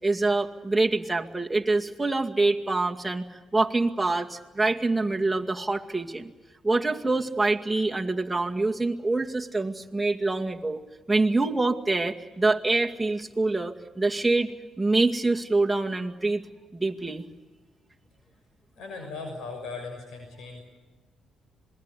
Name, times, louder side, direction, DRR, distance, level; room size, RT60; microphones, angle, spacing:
voice 1, 0.0-3.2 3.5-6.3 6.6-10.8 11.1-14.5 14.8-16.4 16.7-17.2, right 3 dB, 10° right, 1 dB, 2.2 m, -25 dB
voice 2, 18.8-20.6, left 4 dB, 75° left, 4 dB, 6.3 m, -38 dB
26.5 x 21.0 x 8.4 m, 1.3 s
cardioid pair, 90°, 0 cm